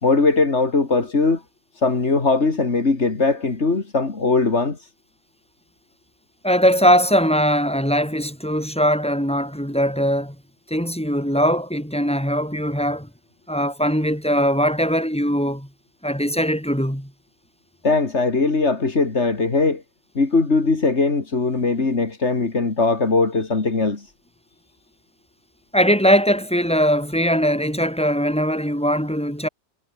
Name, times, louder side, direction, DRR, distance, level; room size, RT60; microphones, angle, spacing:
voice 1, 0.0-1.4 1.7-4.9 17.8-19.8 20.1-24.1, left 3 dB, 80° left, 3.0 m, -20 dB
voice 2, 6.4-10.4 10.7-13.1 13.5-15.7 16.0-17.1 25.7-29.5, equal, 5° left, 5.2 m, -20 dB
omnidirectional pair, 1.2 m